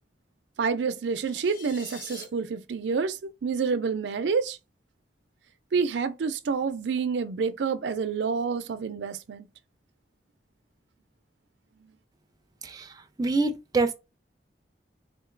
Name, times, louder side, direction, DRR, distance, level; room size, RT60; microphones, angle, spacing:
voice 1, 0.6-4.6 5.7-9.5, right 5 dB, 85° right, 0.4 m, -28 dB
sound 1, 1.0-2.2, left 3 dB, 50° left, 1.0 m, -45 dB
voice 2, 13.2-13.9, right 3 dB, 20° right, 0.4 m, -25 dB
3.7 x 2.8 x 2.5 m
head